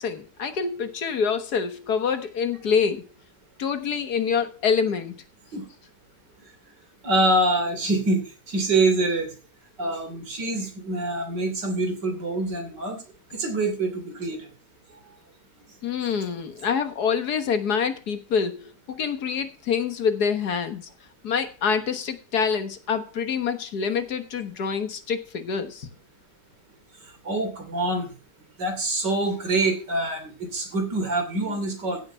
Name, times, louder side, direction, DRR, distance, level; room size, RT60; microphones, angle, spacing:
voice 1, 0.0-3.0 3.6-5.1 15.8-20.9 21.2-25.9, left 6 dB, 70° left, 1.8 m, -26 dB
voice 2, 7.0-9.3 9.8-13.0 13.3-14.5 27.3-28.1 28.6-32.0, right 2 dB, 85° right, 3.6 m, -25 dB
15.5 x 6.3 x 5.5 m
omnidirectional pair, 1.8 m